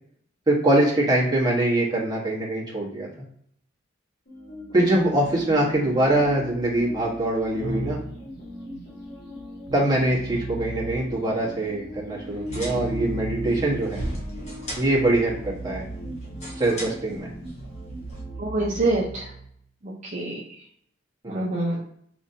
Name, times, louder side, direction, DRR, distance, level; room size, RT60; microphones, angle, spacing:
voice 1, 0.5-3.1 4.7-8.0 9.7-14.0 14.8-15.8 16.6-17.3 21.2-21.4, right 1 dB, 20° right, -5 dB, 1.3 m, -23 dB
sound 1, 4.3-19.0, equal, 55° left, 1.6 m, -39 dB
Keyboard (musical), 7.6-8.2 9.7-11.3 12.5-19.5, right 3 dB, 85° right, 0.7 m, -36 dB
sound 2, 12.3-18.2, equal, 35° left, 1.1 m, -38 dB
voice 2, 18.4-19.3 19.8-20.4 21.3-21.8, right 2 dB, 40° right, -5 dB, 0.6 m, -26 dB
5.0 x 2.9 x 2.8 m, 0.67 s
head